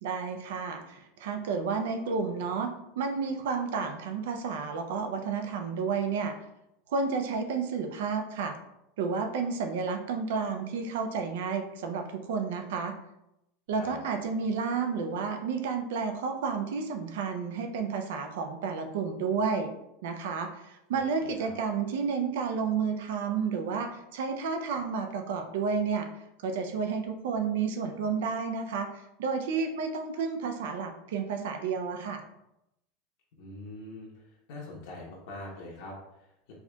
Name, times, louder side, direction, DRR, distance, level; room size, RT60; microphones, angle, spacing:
voice 1, 0.0-6.3 6.9-8.5 9.0-12.9 13.7-19.7 20.0-26.1 26.4-32.2, right 5 dB, 80° right, 6 dB, 0.5 m, -31 dB
voice 2, 20.9-21.5 33.4-34.2 34.5-36.5, left 2 dB, 60° left, -4 dB, 0.9 m, -44 dB
4.5 x 2.8 x 2.2 m, 0.85 s
supercardioid pair, 175°, 0 cm